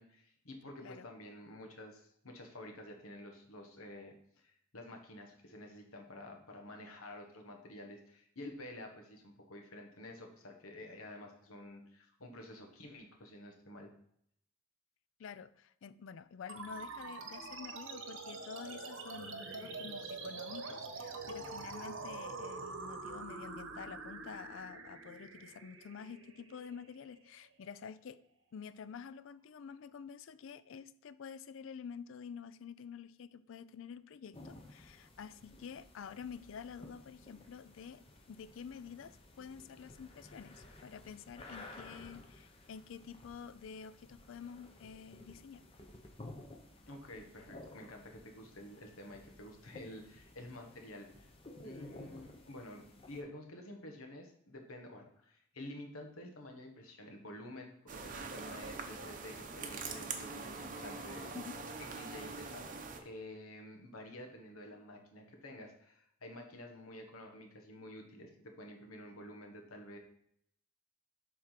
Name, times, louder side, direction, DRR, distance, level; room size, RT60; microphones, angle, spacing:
voice 1, 0.0-13.9 46.9-51.3 51.6-61.3 61.8-62.7 63.0-70.0, left 1 dB, 85° left, 1.4 m, -50 dB
voice 2, 15.2-28.2 28.5-38.0 38.3-45.6 61.3-61.6, left 6 dB, 65° left, 0.4 m, -49 dB
sound 1, 16.5-27.4, right 3 dB, 65° right, 1.0 m, -45 dB
sound 2, 34.3-53.2, left 1 dB, 25° left, 0.8 m, -54 dB
sound 3, 57.9-63.0, right 4 dB, 40° right, 0.7 m, -43 dB
7.5 x 3.7 x 5.8 m
head